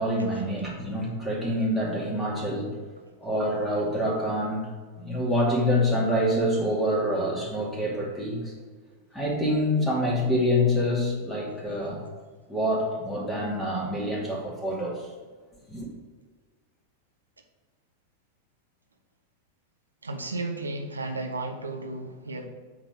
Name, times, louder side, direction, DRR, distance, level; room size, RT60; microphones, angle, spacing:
voice 1, 0.0-2.8 3.2-4.7 5.0-8.5 9.1-12.0 12.5-15.1 15.7-15.9, equal, 5° left, -4 dB, 2.6 m, -26 dB
voice 2, 20.0-22.5, right 2 dB, 75° right, 4 dB, 1.0 m, -33 dB
8.6 x 3.9 x 6.4 m, 1.5 s
figure-of-eight pair, 90°, 0 cm